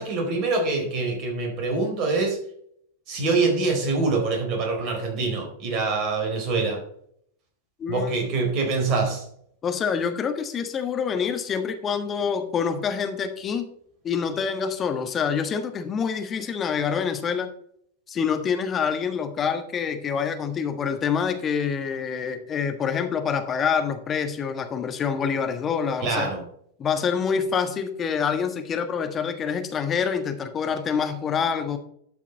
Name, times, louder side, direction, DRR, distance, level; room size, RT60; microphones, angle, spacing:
voice 1, 0.0-2.4 3.1-6.8 7.9-9.2 26.0-26.4, right 3 dB, 40° right, 3 dB, 3.9 m, -25 dB
voice 2, 7.8-8.1 9.6-13.7 14.0-17.5 18.1-26.3 26.8-31.8, left 6 dB, 25° left, 7 dB, 1.4 m, -26 dB
12.0 x 6.0 x 4.1 m, 0.66 s
figure-of-eight pair, 90°, 0 cm